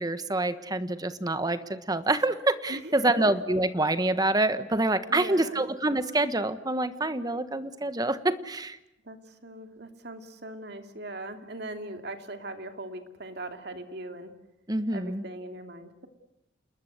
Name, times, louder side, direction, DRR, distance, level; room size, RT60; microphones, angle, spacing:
voice 1, 0.0-8.8 14.7-15.2, right 2 dB, 20° right, 11 dB, 1.3 m, -26 dB
voice 2, 2.7-3.1 5.1-5.7 9.1-9.2 9.4-14.3 14.9-16.1, right 2 dB, 60° right, 6 dB, 2.7 m, -40 dB
29.0 x 21.0 x 8.1 m, 0.87 s
head